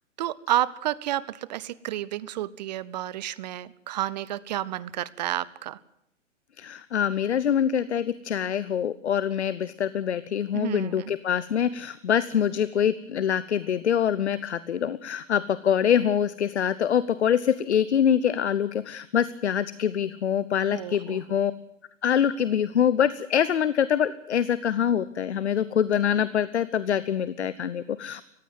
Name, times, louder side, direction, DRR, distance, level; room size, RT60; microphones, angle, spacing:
voice 1, 0.2-5.8 10.5-11.1 20.7-21.2, right 13 dB, 35° right, 20 dB, 0.7 m, -30 dB
voice 2, 6.6-21.5 22.0-28.2, left 9 dB, 65° left, 17 dB, 1.0 m, -25 dB
19.5 x 15.5 x 9.3 m, 0.77 s
figure-of-eight pair, 115°, 37 cm